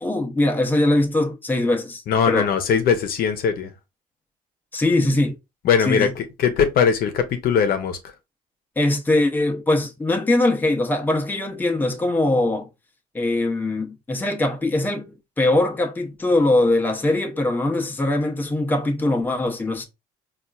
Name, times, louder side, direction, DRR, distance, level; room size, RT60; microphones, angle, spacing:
voice 1, 0.0-2.5 4.7-5.4 5.9-6.1 8.8-12.7 13.1-19.8, left 2 dB, 10° left, 0.6 m, -21 dB
voice 2, 2.1-3.7 5.6-8.1, left 7 dB, 60° left, 0.7 m, -20 dB
4.2 x 2.4 x 2.3 m
cardioid pair, 110°, 17 cm